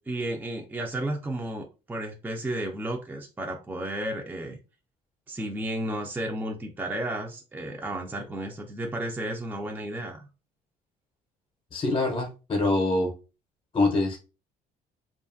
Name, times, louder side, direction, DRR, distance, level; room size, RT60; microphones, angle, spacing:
voice 1, 0.0-4.6 5.3-10.3, right 1 dB, 10° right, 1 dB, 0.4 m, -33 dB
voice 2, 11.7-13.1 13.7-14.2, left 2 dB, 30° left, -1 dB, 0.7 m, -24 dB
2.6 x 2.4 x 2.5 m, 0.31 s
cardioid pair, 110°, 17 cm